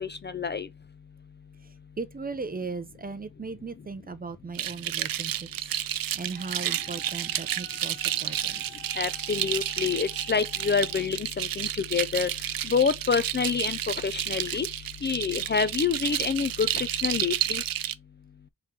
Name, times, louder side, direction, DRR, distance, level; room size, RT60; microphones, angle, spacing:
voice 1, 0.0-0.7 9.0-12.3 12.6-14.7 15.0-17.6, left 6 dB, 30° left, 0.4 m, -27 dB
voice 2, 1.6-8.6, right 4 dB, 25° right, 0.6 m, -38 dB
sound 1, 4.6-17.9, right 12 dB, 80° right, 0.5 m, -31 dB
Wind instrument woodwind instrument, 6.3-11.1, left 10 dB, 60° left, 1.0 m, -52 dB
4.4 x 3.7 x 3.2 m
wide cardioid pair, 130°, 34 cm